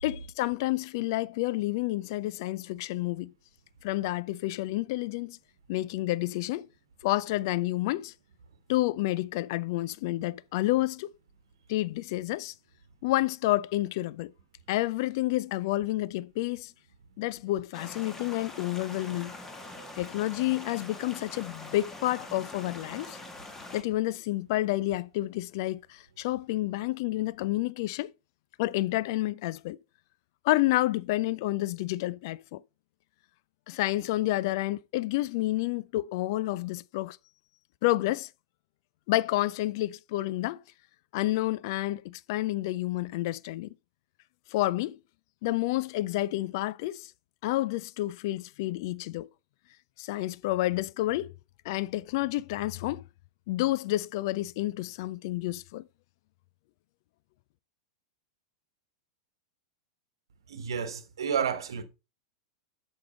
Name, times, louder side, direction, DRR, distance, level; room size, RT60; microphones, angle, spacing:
voice 1, 0.0-3.3 3.8-5.4 5.7-6.7 7.0-8.1 8.7-11.1 11.7-12.5 13.0-14.3 14.7-16.7 17.2-19.3 20.0-23.2 23.7-28.1 28.6-29.8 30.4-32.6 33.7-37.2 37.8-38.3 39.1-40.6 41.1-43.7 44.5-45.0 45.4-47.1 47.4-49.3 50.0-51.3 51.7-53.0 53.5-55.8, left 17 dB, 50° left, 0.4 m, -29 dB
sound 1, 17.7-23.8, left 2 dB, 15° left, 1.6 m, -44 dB
voice 2, 60.5-61.8, right 7 dB, 65° right, 1.1 m, -31 dB
8.4 x 6.4 x 3.9 m
figure-of-eight pair, 95°, 3 cm